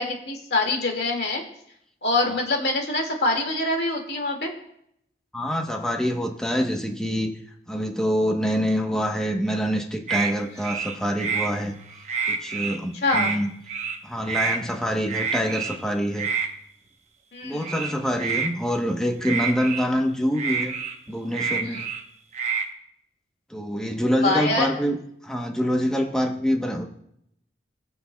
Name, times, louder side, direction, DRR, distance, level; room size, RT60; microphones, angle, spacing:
voice 1, 0.0-1.4 2.0-4.5 12.9-13.3 17.3-17.7 21.6-21.8 24.2-24.7, left 2 dB, 70° left, 1 dB, 2.1 m, -25 dB
voice 2, 5.3-7.3 7.7-11.7 12.3-13.5 14.0-16.3 17.4-20.7 21.1-21.8 23.5-25.0 25.2-26.9, equal, 5° left, 1 dB, 1.0 m, -25 dB
sound 1, 10.1-10.3 10.6-11.5 11.9-12.8 13.0-13.4 13.7-14.0 14.3-14.6 15.1-15.8 16.2-16.5 17.6-18.5 19.2-19.9 20.3-22.0 22.3-22.7, right 6 dB, 40° right, 0.9 m, -27 dB
20.0 x 6.8 x 2.3 m, 0.73 s
head